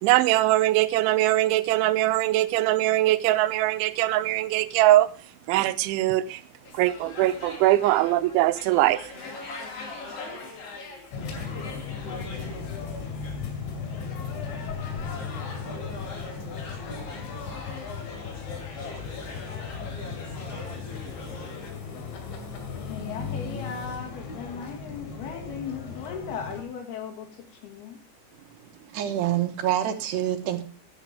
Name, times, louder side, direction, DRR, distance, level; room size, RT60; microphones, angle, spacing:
voice 1, 0.0-5.1 5.5-6.4 6.7-9.1, right 15 dB, 90° right, 3.1 m, -22 dB
sound 1, 6.6-21.7, left 3 dB, 40° left, 2.7 m, -42 dB
sound 2, 11.1-26.6, left 5 dB, 80° left, 4.7 m, -36 dB
voice 2, 22.8-28.0, left 7 dB, 65° left, 3.6 m, -37 dB
voice 3, 28.7-30.6, right 11 dB, 70° right, 3.1 m, -27 dB
15.0 x 11.5 x 3.4 m
omnidirectional pair, 5.3 m